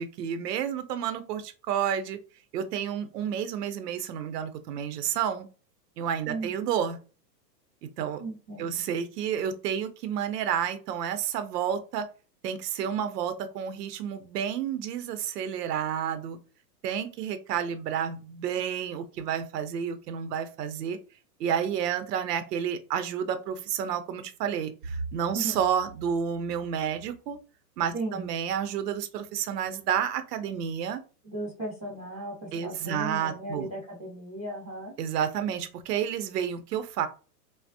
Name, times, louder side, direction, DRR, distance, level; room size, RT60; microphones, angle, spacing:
voice 1, 0.0-2.2 2.5-5.5 6.0-7.0 8.0-8.2 8.6-12.1 12.4-16.4 16.8-21.0 21.4-27.4 27.8-31.0 32.5-33.7 35.0-37.1, right 8 dB, 70° right, 10 dB, 0.6 m, -30 dB
voice 2, 8.2-8.8 25.3-25.6 27.9-28.3 31.2-34.9, right 2 dB, 15° right, -10 dB, 0.4 m, -36 dB
3.3 x 2.0 x 2.6 m, 0.36 s
hypercardioid pair, 160°, 49 cm